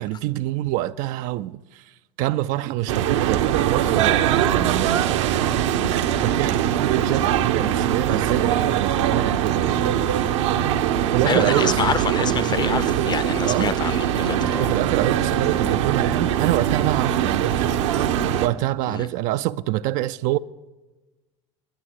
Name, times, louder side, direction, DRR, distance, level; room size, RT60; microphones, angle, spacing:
voice 1, 0.0-1.9 2.2-5.5 6.2-9.6 11.1-11.8 13.4-13.7 14.6-17.7 18.4-20.4, right 16 dB, 55° right, 0.4 m, -26 dB
sound 1, 2.9-18.5, right 10 dB, 70° right, 0.8 m, -22 dB
voice 2, 11.3-14.7 18.9-19.1, left 7 dB, 25° left, 0.7 m, -27 dB
11.5 x 10.5 x 6.3 m
hypercardioid pair, 80°, 16 cm